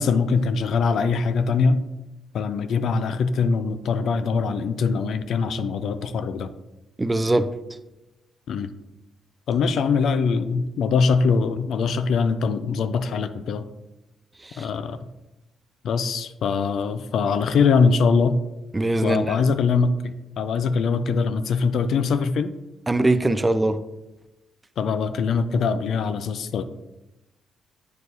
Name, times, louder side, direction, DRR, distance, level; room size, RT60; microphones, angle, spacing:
voice 1, 0.0-1.8 2.3-6.5 8.5-8.7 9.5-13.7 14.6-15.0 15.8-18.4 19.0-22.5 24.8-26.6, left 5 dB, 65° left, 11 dB, 0.4 m, -22 dB
voice 2, 7.0-7.5 18.7-19.4 22.9-23.8, right 2 dB, 15° right, 11 dB, 0.4 m, -21 dB
9.3 x 4.5 x 2.7 m, 1.0 s
cardioid pair, 90°, 0 cm